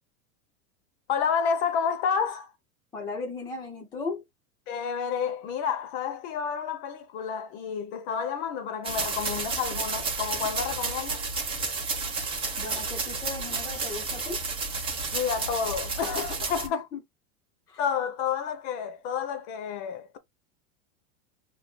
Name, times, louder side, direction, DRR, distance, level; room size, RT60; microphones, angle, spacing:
voice 1, 1.1-2.5 4.7-11.2 15.1-16.8 17.8-20.2, left 7 dB, 40° left, 1.0 m, -30 dB
voice 2, 2.9-4.2 12.6-14.4 16.6-17.0 17.7-17.8, left 4 dB, 10° left, 0.5 m, -36 dB
sound 1, 8.8-16.7, right 4 dB, 10° right, 1.0 m, -31 dB
6.2 x 2.8 x 2.3 m
supercardioid pair, 165°, 44 cm